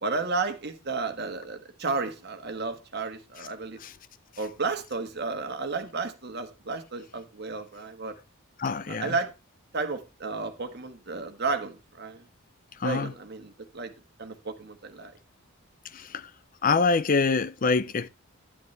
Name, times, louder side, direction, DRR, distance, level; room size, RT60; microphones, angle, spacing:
voice 1, 0.0-3.8 4.4-8.2 8.9-9.3 9.7-12.2 12.8-13.9 14.2-15.1, right 4 dB, 50° right, 1.4 m, -32 dB
voice 2, 8.6-9.1 12.8-13.1 16.6-18.1, left 4 dB, 40° left, 0.5 m, -24 dB
10.0 x 9.2 x 3.2 m
head